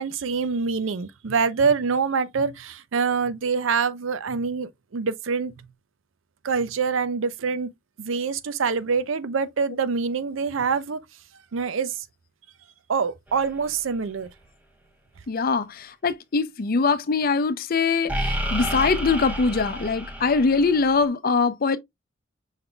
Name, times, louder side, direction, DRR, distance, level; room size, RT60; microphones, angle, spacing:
voice 1, 0.0-5.5 6.4-7.7 8.0-11.0 11.5-12.0 12.9-14.3, right 5 dB, 85° right, 0.5 m, -25 dB
sound 1, 13.3-13.5 18.1-21.0, equal, 10° right, 0.9 m, -30 dB
voice 2, 15.3-21.8, left 4 dB, 50° left, 0.5 m, -22 dB
5.4 x 3.8 x 2.2 m
head